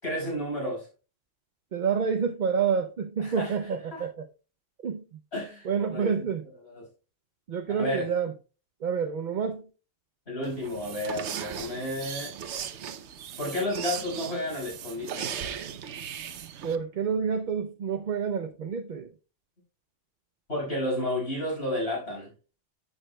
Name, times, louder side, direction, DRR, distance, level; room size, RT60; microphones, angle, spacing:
voice 1, 0.0-0.9 3.2-3.5 3.9-4.0 5.3-6.2 6.6-6.9 7.8-8.1 10.3-12.3 13.4-15.3 20.5-22.3, left 1 dB, 60° left, 6.0 m, -32 dB
voice 2, 1.7-4.3 4.8-5.2 5.6-6.5 7.5-8.3 8.8-9.6 16.6-19.1, right 6 dB, 50° right, 0.7 m, -28 dB
sound 1, 10.4-16.8, right 8 dB, 75° right, 1.0 m, -37 dB
11.5 x 8.8 x 2.2 m
omnidirectional pair, 1.2 m